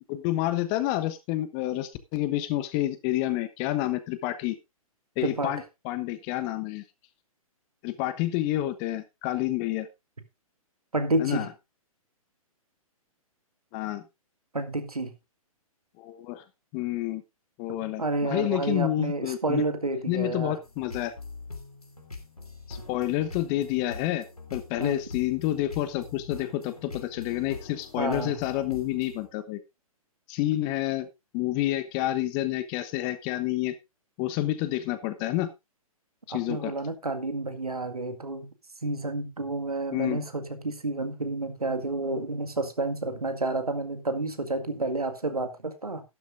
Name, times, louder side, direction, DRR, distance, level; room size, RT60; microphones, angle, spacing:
voice 1, 0.1-4.6 5.2-6.8 7.8-9.9 11.2-11.5 13.7-14.0 16.0-16.4 16.7-17.2 17.6-19.6 20.1-21.1 22.7-24.2 24.5-29.6 30.3-31.1 31.3-33.7 34.2-35.5 36.3-36.7 39.9-40.2, left 15 dB, 30° left, 1.1 m, -29 dB
voice 2, 5.2-5.5 10.9-11.5 14.5-15.1 18.0-20.6 24.8-25.0 28.0-28.4 36.3-38.5 38.8-46.0, right 2 dB, 85° right, 1.9 m, -30 dB
sound 1, 20.6-29.3, left 3 dB, 90° left, 3.0 m, -43 dB
12.5 x 12.0 x 2.6 m
figure-of-eight pair, 120°, 19 cm